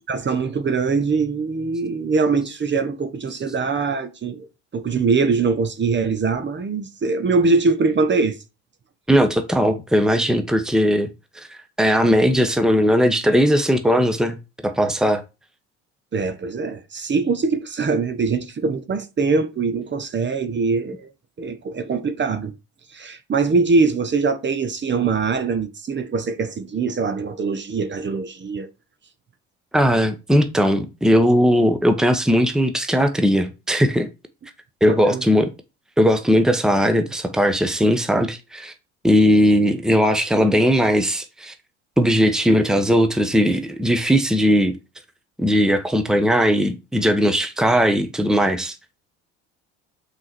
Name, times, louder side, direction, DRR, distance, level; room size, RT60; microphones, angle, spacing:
voice 1, 0.1-4.5 4.7-8.4 16.1-21.1 21.4-22.5 22.9-28.7 34.9-35.2, right 4 dB, 30° right, 1.3 m, -22 dB
voice 2, 9.1-11.1 11.3-14.4 14.6-15.2 29.7-34.1 34.8-35.5 36.0-38.7 39.0-41.5 42.0-44.8 45.4-48.8, equal, ahead, 1.2 m, -18 dB
6.1 x 4.9 x 4.5 m
hypercardioid pair, 70°, 35 cm